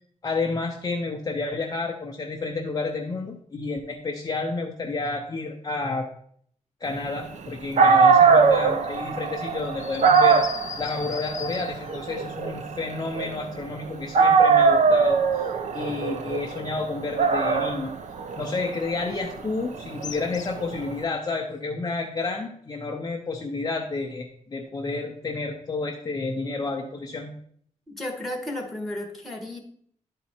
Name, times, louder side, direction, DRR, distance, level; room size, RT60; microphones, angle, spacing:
voice 1, 0.2-6.1 6.8-10.4 10.8-17.9 18.4-27.4, left 3 dB, 30° left, 0 dB, 0.7 m, -30 dB
Dog, 7.5-7.6 7.8-13.8 14.1-20.9, right 5 dB, 60° right, 0.7 m, -21 dB
sound 1, 9.8-12.1 20.0-20.7, left 8 dB, 70° left, 0.7 m, -38 dB
voice 2, 27.9-29.6, left 1 dB, ahead, 1 dB, 1.4 m, -33 dB
11.0 x 4.1 x 4.3 m, 0.64 s
wide cardioid pair, 160°, 13 cm